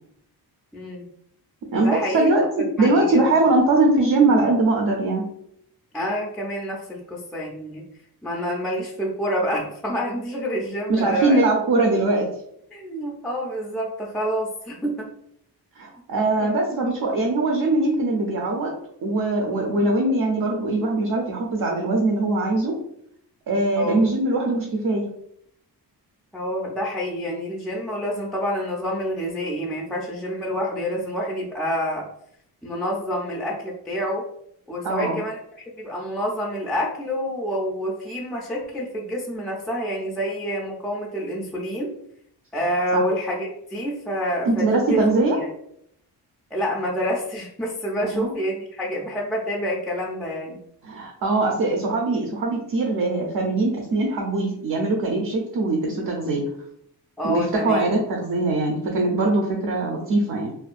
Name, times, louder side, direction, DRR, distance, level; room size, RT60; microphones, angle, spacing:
voice 1, 0.7-1.1 1.7-2.3 2.6-3.3 5.9-7.8 8.2-11.4 12.7-15.1 16.4-17.0 23.8-24.0 26.3-32.1 32.6-34.3 34.7-35.4 35.7-41.9 42.5-44.8 45.4-45.5 46.5-50.6 57.2-57.8, equal, ahead, -2 dB, 0.3 m, -28 dB
voice 2, 1.7-2.4 2.8-5.2 10.9-12.3 15.8-18.7 19.0-22.8 23.5-25.0 34.8-35.2 42.9-43.0 44.5-45.4 48.0-48.3 50.8-56.4 57.2-60.5, right 2 dB, 55° right, 0 dB, 0.5 m, -21 dB
2.5 x 2.2 x 2.4 m, 0.72 s
cardioid pair, 105°, 39 cm